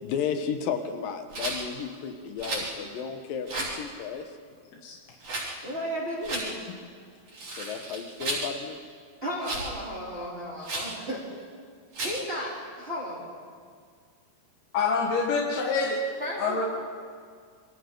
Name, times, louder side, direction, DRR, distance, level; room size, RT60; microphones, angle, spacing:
voice 1, 0.0-4.3 7.6-8.8, left 7 dB, 70° left, 7 dB, 2.7 m, -33 dB
Rattle, 1.3-1.6 2.4-2.7 3.5-3.8 5.2-5.5 6.2-6.5 7.3-8.5 9.4-9.7 10.6-10.9 11.9-12.2, right 2 dB, 50° right, 6.4 m, -33 dB
voice 2, 5.6-6.5 9.2-11.4 12.0-13.3 16.2-16.6, equal, 15° right, -9 dB, 4.1 m, -34 dB
voice 3, 14.7-16.0 16.4-16.6, left 4 dB, 90° left, -1 dB, 3.6 m, -26 dB
28.5 x 24.0 x 3.9 m, 2.1 s
omnidirectional pair, 4.3 m